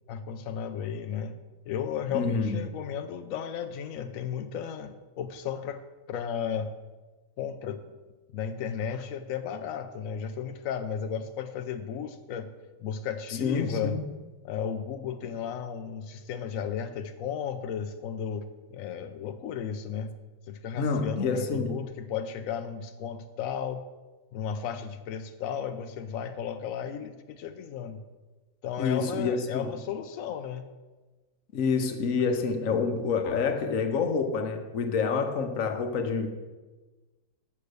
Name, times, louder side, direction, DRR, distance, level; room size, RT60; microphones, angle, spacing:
voice 1, 0.1-1.4 1.7-5.8 6.1-6.7 7.4-7.8 8.3-12.5 12.8-14.0 14.4-20.1 20.5-23.8 24.3-28.0 28.6-30.7, left 7 dB, 75° left, 7 dB, 0.7 m, -34 dB
voice 2, 2.1-2.6 13.4-14.1 20.7-21.7 28.8-29.7 31.5-36.3, left 5 dB, 55° left, 7 dB, 1.1 m, -27 dB
8.5 x 6.6 x 6.6 m, 1.2 s
omnidirectional pair, 1.9 m